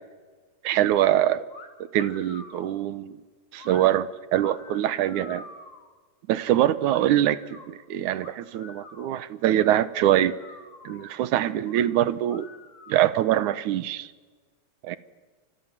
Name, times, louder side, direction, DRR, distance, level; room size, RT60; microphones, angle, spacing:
voice 1, 0.6-1.4 1.9-3.2 3.5-5.4 6.3-10.4 10.8-12.5 12.9-14.1 14.8-15.0, right 12 dB, 90° right, 15 dB, 2.5 m, -23 dB
sound 1, 1.5-1.7 2.0-2.7 3.6-3.9 4.3-5.9 6.9-7.7 8.2-9.1 9.6-9.7 10.0-11.1 11.6-11.9 12.2-13.4, left 4 dB, 45° left, 3.7 m, -46 dB
30.0 x 26.5 x 7.5 m, 1.4 s
omnidirectional pair, 3.4 m